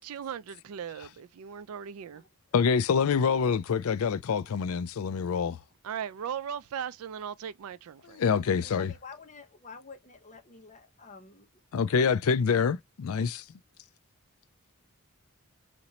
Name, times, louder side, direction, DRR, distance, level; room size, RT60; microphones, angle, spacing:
voice 1, 0.0-2.2 5.8-8.2, right 8 dB, 80° right, 0.4 m, -38 dB
voice 2, 2.5-5.6 8.2-8.9 11.7-13.4, left 6 dB, 80° left, 0.4 m, -26 dB
voice 3, 8.6-11.5 12.2-12.4, left 5 dB, 35° left, 1.0 m, -48 dB
4.2 x 2.6 x 2.9 m
head